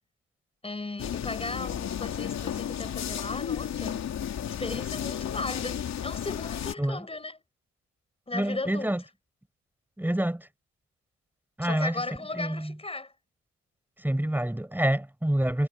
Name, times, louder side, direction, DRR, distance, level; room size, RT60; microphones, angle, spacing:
voice 1, 0.6-4.1 4.5-7.4 8.3-9.0 11.6-13.1, left 3 dB, 20° left, 4.8 m, -36 dB
sound 1, 1.0-6.7, left 9 dB, 60° left, 2.8 m, -33 dB
voice 2, 8.3-9.0 10.0-10.5 11.6-11.9 12.4-12.7 14.0-15.7, right 1 dB, 5° right, 4.9 m, -27 dB
cardioid pair, 90°, 30 cm